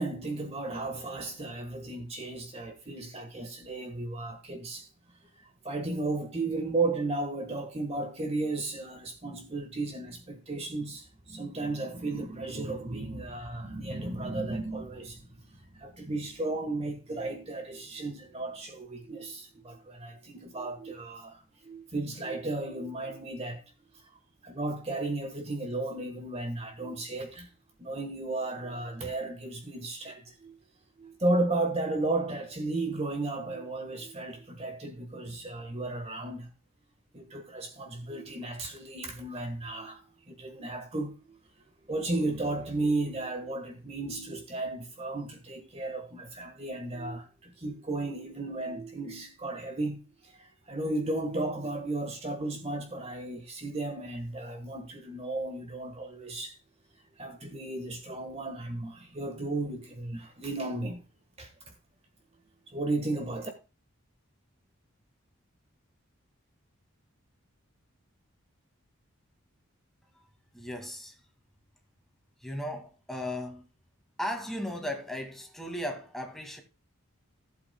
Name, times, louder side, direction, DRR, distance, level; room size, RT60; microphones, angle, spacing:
voice 1, 0.0-4.9 5.4-15.2 15.5-23.6 23.9-24.0 24.4-27.5 27.8-30.6 31.0-36.5 37.1-41.4 41.9-56.5 57.2-61.0 61.4-61.5 62.7-63.5, right 2 dB, 30° right, 1.3 m, -34 dB
voice 2, 70.5-71.2 72.4-73.7 74.2-76.6, left 1 dB, ahead, 2.0 m, -36 dB
15.5 x 8.2 x 2.2 m
head